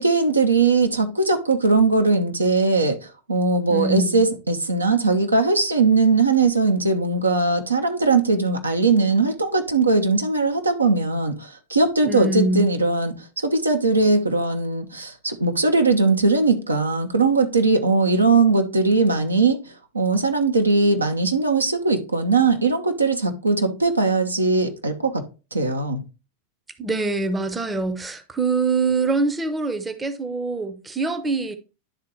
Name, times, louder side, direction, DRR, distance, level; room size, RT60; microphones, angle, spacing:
voice 1, 0.0-3.0 3.3-13.1 13.4-19.6 19.9-25.2 25.5-26.0, right 3 dB, 80° right, 0.8 m, -20 dB
voice 2, 3.7-4.2 12.0-12.7 26.8-31.6, right 3 dB, 15° right, 0.7 m, -24 dB
11.0 x 3.7 x 3.0 m
figure-of-eight pair, 90°, 0 cm